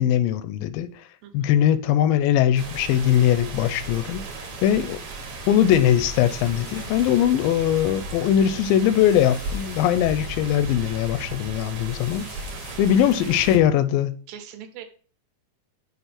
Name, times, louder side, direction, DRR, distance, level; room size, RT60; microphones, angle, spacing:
voice 1, 0.0-1.0 1.3-4.2 4.6-5.0 5.5-12.3 12.8-14.2, left 10 dB, 85° left, 2.3 m, -21 dB
sound 1, 2.6-13.6, right 3 dB, 60° right, 2.3 m, -36 dB
sound 2, 3.6-13.7, equal, 65° left, 1.4 m, -43 dB
sound 3, 6.1-7.2 7.8-8.0 8.3-8.4 8.9-9.9 10.5-10.6 11.8-12.8, left 3 dB, 50° left, 1.4 m, -47 dB
voice 2, 14.3-14.8, right 9 dB, 80° right, 2.5 m, -42 dB
7.1 x 3.4 x 5.8 m
omnidirectional pair, 4.1 m